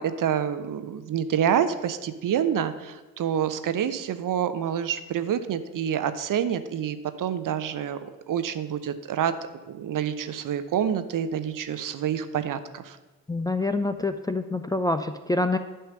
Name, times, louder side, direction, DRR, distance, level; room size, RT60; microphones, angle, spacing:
voice 1, 0.0-9.3 9.7-13.0, right 9 dB, 45° right, 11 dB, 0.8 m, -27 dB
voice 2, 13.3-15.6, left 2 dB, 10° left, 7 dB, 0.5 m, -26 dB
11.0 x 5.6 x 6.7 m, 1.2 s
figure-of-eight pair, 40°, 44 cm